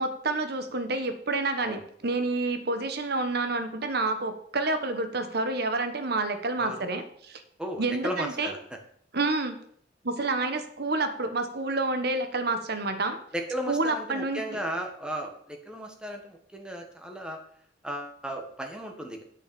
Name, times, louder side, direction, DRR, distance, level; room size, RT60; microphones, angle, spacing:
voice 1, 0.0-7.4 7.8-8.5 9.1-9.6 10.0-13.2 13.7-14.6, right 3 dB, 60° right, 8 dB, 1.3 m, -29 dB
voice 2, 7.6-8.8 13.3-17.4 17.8-19.2, equal, 5° right, 3 dB, 1.5 m, -35 dB
8.4 x 6.7 x 6.9 m, 0.64 s
head